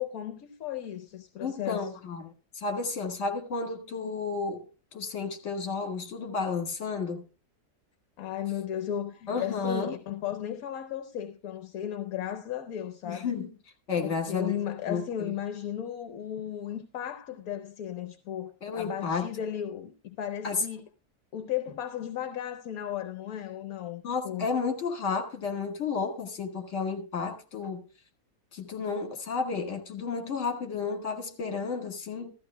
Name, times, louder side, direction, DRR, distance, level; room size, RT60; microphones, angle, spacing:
voice 1, 0.0-1.9 8.2-13.3 14.0-20.9 21.3-24.5, left 10 dB, 70° left, 1.2 m, -35 dB
voice 2, 1.4-4.7 4.9-7.2 9.3-9.9 13.0-13.5 13.9-14.5 14.9-15.3 18.6-19.3 20.4-20.6 24.0-27.8 28.5-32.3, left 5 dB, 50° left, 1.8 m, -32 dB
15.5 x 13.5 x 2.2 m
omnidirectional pair, 1.7 m